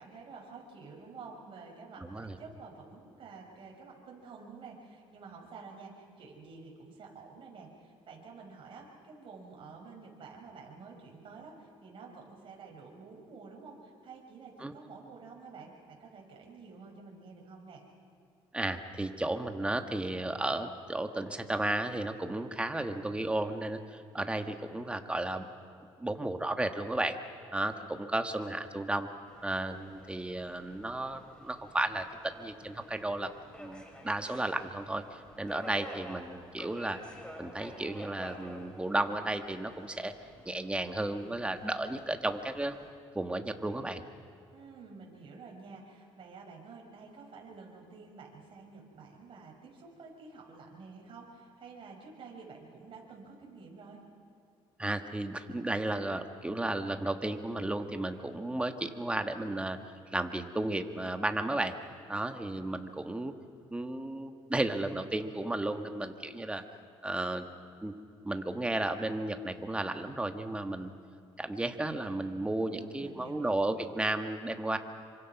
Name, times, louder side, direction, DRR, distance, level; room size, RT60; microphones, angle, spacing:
voice 1, 0.0-17.8 44.5-54.0 72.7-73.6, right 4 dB, 50° right, 0 dB, 5.8 m, -50 dB
voice 2, 2.0-2.4 14.6-14.7 18.5-25.5 26.0-27.2 27.5-29.1 29.4-33.3 33.6-37.0 37.4-40.1 40.4-42.8 43.1-44.0 54.8-59.8 60.1-61.7 62.1-63.3 63.7-66.6 67.0-67.5 67.8-67.9 68.2-70.9 71.4-74.8, right 2 dB, 10° right, 6 dB, 1.7 m, -33 dB
Subway metro underground, 29.3-42.9, equal, 10° left, 4.6 m, -50 dB
27.0 x 25.0 x 6.0 m, 2.5 s
cardioid pair, 110°, 11 cm